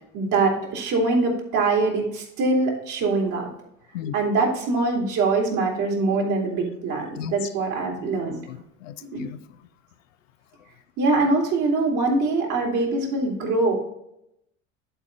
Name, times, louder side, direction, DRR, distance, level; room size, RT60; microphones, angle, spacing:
voice 1, 0.1-3.5 4.1-8.4 9.1-9.2 11.0-13.8, right 3 dB, 50° right, -1 dB, 3.1 m, -23 dB
voice 2, 7.1-7.5 8.4-9.6 10.6-10.7, left 9 dB, 75° left, 12 dB, 0.7 m, -36 dB
11.0 x 4.8 x 4.0 m, 0.81 s
hypercardioid pair, 80°, 39 cm